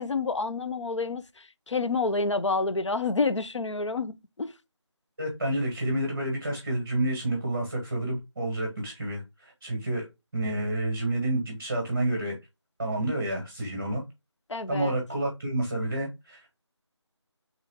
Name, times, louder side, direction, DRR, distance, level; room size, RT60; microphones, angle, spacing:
voice 1, 0.0-4.5 14.5-15.0, left 3 dB, 75° left, 0.5 m, -29 dB
voice 2, 5.2-10.1 10.3-12.4 12.8-14.0 14.7-16.6, right 1 dB, 10° right, 1.1 m, -29 dB
3.7 x 3.1 x 3.4 m
figure-of-eight pair, 170°, 15 cm